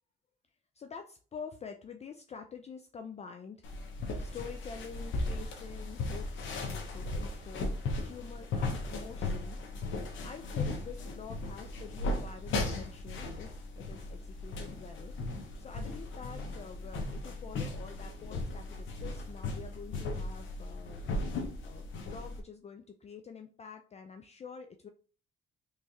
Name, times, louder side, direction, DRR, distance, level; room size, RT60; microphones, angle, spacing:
voice 1, 0.7-3.6 4.2-9.6 10.2-15.3 15.6-21.0 21.6-24.9, left 6 dB, 35° left, 5 dB, 0.4 m, -47 dB
sound 1, 3.6-22.4, left 2 dB, 75° left, 0.8 m, -37 dB
3.4 x 3.1 x 2.7 m, 0.39 s
cardioid pair, 90°, 20 cm